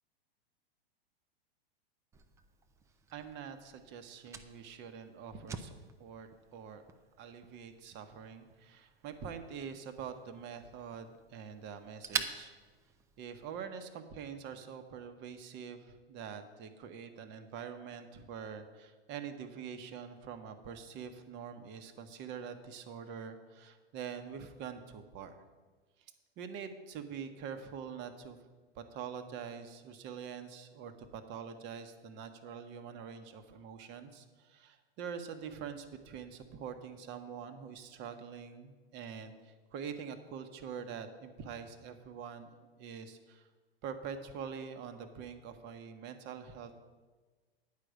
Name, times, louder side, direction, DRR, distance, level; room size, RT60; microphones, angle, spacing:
Fire, 2.1-13.6, right 5 dB, 10° right, 0.3 m, -46 dB
voice 1, 3.1-6.8 7.2-12.5 13.2-25.3 26.4-28.4 28.7-42.5 42.8-43.5 43.8-46.8, right 7 dB, 35° right, 8 dB, 1.0 m, -45 dB
9.3 x 5.0 x 7.9 m, 1.4 s
hypercardioid pair, 125°, 31 cm